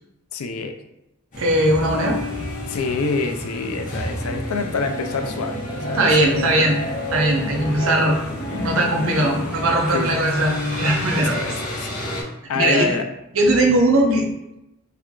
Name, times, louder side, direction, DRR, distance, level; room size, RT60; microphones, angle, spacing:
voice 1, 0.3-0.7 2.7-6.5 9.9-10.2 11.1-11.9 12.5-13.1, left 4 dB, 90° left, 6 dB, 0.4 m, -26 dB
sound 1, 1.3-12.2, left 1 dB, 40° left, 0.9 m, -29 dB
voice 2, 1.4-2.2 5.9-6.8 7.1-8.2 8.5-11.4 12.5-12.9 13.3-14.3, right 1 dB, 70° right, 0 dB, 0.7 m, -19 dB
sound 2, 4.2-9.3, equal, 55° left, 1.4 m, -39 dB
3.3 x 2.3 x 3.6 m, 0.89 s
head